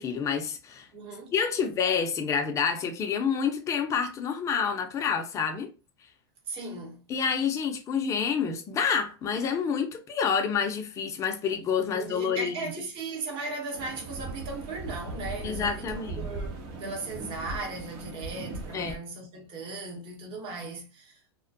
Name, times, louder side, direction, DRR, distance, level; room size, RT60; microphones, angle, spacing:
voice 1, 0.0-0.9 1.3-5.7 7.1-12.7 15.4-16.3 18.7-19.0, left 6 dB, 20° left, 0.4 m, -28 dB
voice 2, 0.9-1.3 6.5-7.0 11.9-21.2, right 3 dB, 40° right, 0.9 m, -37 dB
sound 1, 13.7-18.9, right 2 dB, 60° right, 0.9 m, -38 dB
2.4 x 2.1 x 2.5 m
supercardioid pair, 130°, 14 cm